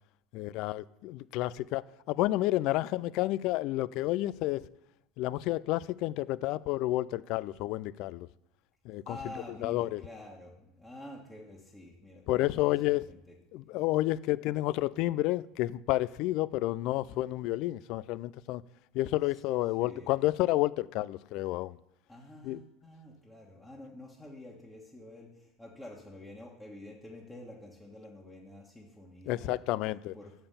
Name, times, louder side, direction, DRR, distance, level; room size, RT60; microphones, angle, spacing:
voice 1, 0.3-4.7 5.2-8.3 8.8-9.3 9.6-10.0 12.3-13.0 13.5-18.6 18.9-21.8 22.4-22.6 29.3-30.2, left 17 dB, 60° left, 0.3 m, -30 dB
voice 2, 9.0-13.2 19.8-20.1 22.1-29.6 30.1-30.3, left 1 dB, 10° left, 1.5 m, -48 dB
6.8 x 5.6 x 6.8 m
hypercardioid pair, 85°, 0 cm